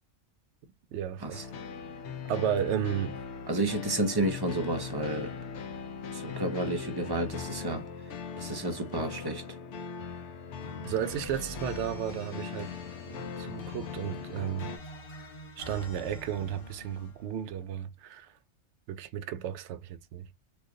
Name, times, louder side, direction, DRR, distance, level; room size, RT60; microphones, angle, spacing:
voice 1, 0.9-1.4 2.2-3.1 10.8-12.7 13.1-14.7 15.6-18.4 18.9-20.3, right 10 dB, 70° right, 0.8 m, -33 dB
sound 1, 1.3-14.8, left 6 dB, 70° left, 0.9 m, -40 dB
voice 2, 3.5-5.3 6.1-7.9 8.4-9.4, right 2 dB, 30° right, 0.5 m, -31 dB
sound 2, 10.6-17.3, left 2 dB, 50° left, 1.0 m, -46 dB
3.1 x 2.3 x 3.7 m
omnidirectional pair, 1.3 m